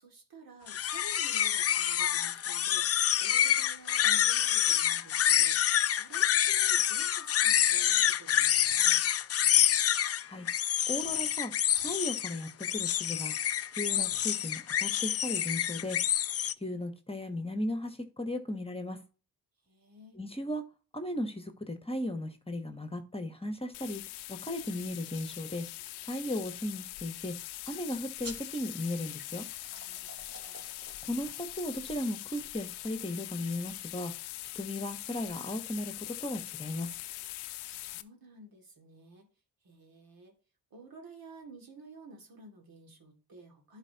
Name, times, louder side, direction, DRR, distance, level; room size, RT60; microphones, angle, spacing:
voice 1, 0.0-2.9 3.2-9.0 19.6-20.2 29.8-30.6 37.6-39.3 39.6-40.3 40.7-43.8, right 2 dB, 65° right, 2 dB, 2.5 m, -52 dB
sound 1, 0.7-16.5, left 10 dB, 40° left, 0.4 m, -27 dB
voice 2, 10.9-11.5 11.8-13.4 13.8-16.0 16.6-19.0 20.2-20.6 20.9-24.0 24.3-25.7 26.1-27.3 27.7-29.4 31.0-34.1 34.5-36.9, left 1 dB, 15° left, 7 dB, 1.3 m, -36 dB
sound 2, 23.7-38.0, left 16 dB, 85° left, 0.5 m, -42 dB
sound 3, 28.2-33.3, right 2 dB, 40° right, 3.2 m, -52 dB
11.0 x 4.8 x 2.9 m, 0.35 s
supercardioid pair, 50°, 38 cm